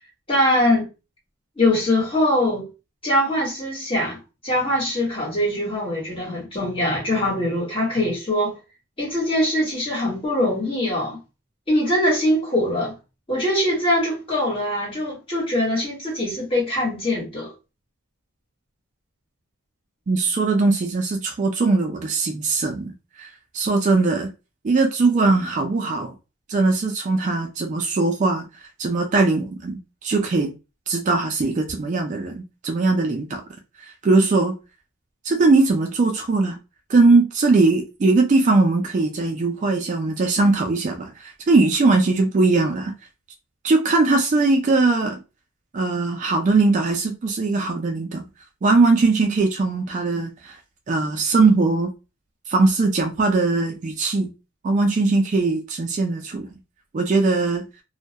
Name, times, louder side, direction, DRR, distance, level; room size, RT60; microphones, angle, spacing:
voice 1, 0.3-0.9 1.6-2.7 3.0-4.2 4.4-8.6 9.0-11.2 11.7-12.9 13.3-17.5, left 1 dB, 25° left, 1.1 m, -22 dB
voice 2, 20.1-23.3 23.5-24.3 24.6-26.1 26.5-30.5 30.9-33.4 33.8-34.5 35.2-36.6 36.9-42.9 43.6-45.2 45.7-48.2 48.6-50.6 50.9-51.9 52.5-54.3 54.6-56.5 56.9-57.6, right 3 dB, 35° right, 0.3 m, -20 dB
2.2 x 2.1 x 2.7 m
head